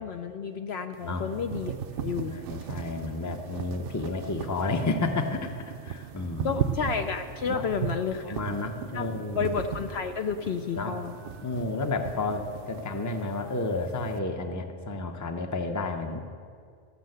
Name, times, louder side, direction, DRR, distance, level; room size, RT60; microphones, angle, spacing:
voice 1, 0.0-1.7 2.0-2.4 6.4-8.4 8.9-11.1, left 6 dB, 65° left, 6 dB, 0.8 m, -31 dB
sound 1, 0.9-14.2, right 8 dB, 60° right, 0.7 m, -37 dB
voice 2, 2.3-6.6 7.5-7.6 8.2-9.5 10.8-11.0 11.4-16.2, left 3 dB, 20° left, 6 dB, 0.6 m, -31 dB
14.0 x 6.4 x 7.8 m, 2.2 s
omnidirectional pair, 1.3 m